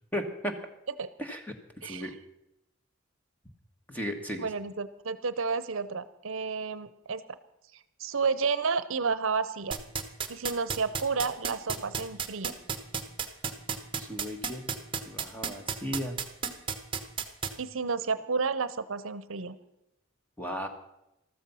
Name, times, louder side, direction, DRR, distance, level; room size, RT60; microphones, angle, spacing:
voice 1, 0.1-0.5 1.2-2.1 3.9-4.5 14.0-14.8 15.0-16.2 20.4-20.7, equal, 10° left, 5 dB, 1.5 m, -35 dB
voice 2, 4.4-7.2 8.0-9.8 10.3-12.5 17.6-19.6, right 5 dB, 75° right, 15 dB, 0.8 m, -31 dB
sound 1, 9.7-17.5, right 6 dB, 25° right, 1.1 m, -31 dB
13.5 x 13.5 x 5.6 m, 0.89 s
head